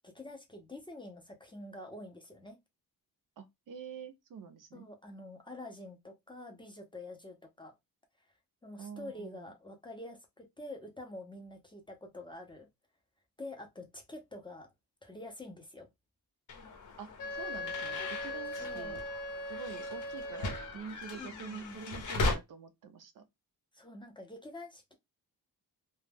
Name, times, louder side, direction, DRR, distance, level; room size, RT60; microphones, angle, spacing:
voice 1, 0.0-2.6 4.7-7.7 8.6-12.7 13.4-14.7 15.0-15.9 18.6-19.0 21.2-21.8 23.7-24.9, left 1 dB, 15° left, 0.4 m, -47 dB
voice 2, 3.4-4.9 8.8-9.5 17.0-19.0 19.5-23.2, right 6 dB, 55° right, 0.5 m, -46 dB
sound 1, 16.5-22.3, left 2 dB, 50° left, 0.7 m, -38 dB
Wind instrument woodwind instrument, 17.2-20.7, left 1 dB, 70° left, 1.0 m, -39 dB
2.1 x 2.0 x 3.3 m
wide cardioid pair, 165°, 39 cm